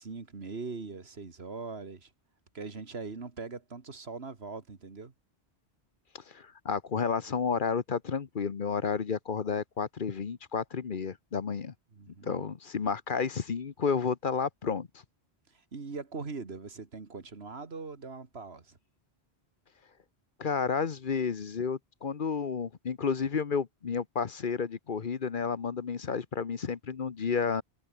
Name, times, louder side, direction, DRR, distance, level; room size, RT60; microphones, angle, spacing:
voice 1, 0.0-2.1 2.5-5.1 11.9-12.5 15.5-18.8, right 4 dB, 70° right, 2.3 m, -41 dB
voice 2, 6.1-11.7 12.2-14.9 20.4-27.6, left 5 dB, 50° left, 1.1 m, -31 dB
omnidirectional pair, 1.1 m